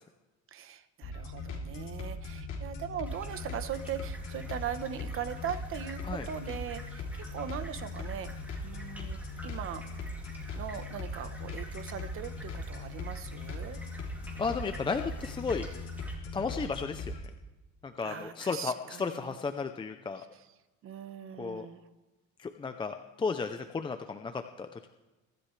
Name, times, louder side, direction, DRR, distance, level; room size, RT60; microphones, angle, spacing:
voice 1, 0.5-7.0 7.3-8.3 8.6-9.8 10.5-13.8 18.0-19.4 20.2-20.5 20.8-21.8, right 9 dB, 45° right, 11 dB, 1.1 m, -40 dB
sound 1, 1.0-17.3, left 2 dB, 45° left, 3.2 m, -39 dB
sound 2, 3.0-16.2, equal, 5° right, 2.8 m, -51 dB
voice 2, 14.4-15.7 16.3-17.1 17.8-20.2 21.4-21.7 22.4-24.9, left 4 dB, 15° left, 7 dB, 0.6 m, -34 dB
23.0 x 13.0 x 3.3 m, 1.1 s
cardioid pair, 160°, 29 cm